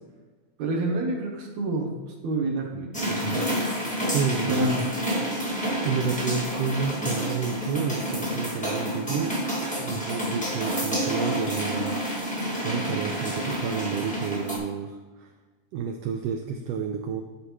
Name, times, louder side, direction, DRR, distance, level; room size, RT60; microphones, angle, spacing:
voice 1, 0.6-1.9 2.2-3.5 4.5-4.8 7.0-7.1 9.9-10.0, right 2 dB, 70° right, -1 dB, 2.2 m, -28 dB
sound 1, 2.9-14.6, equal, 10° left, 0.4 m, -29 dB
voice 2, 4.1-4.8 5.8-9.4 9.8-15.3 15.7-17.2, right 6 dB, 90° right, 4 dB, 1.4 m, -30 dB
11.0 x 4.9 x 3.2 m, 1.3 s
omnidirectional pair, 3.3 m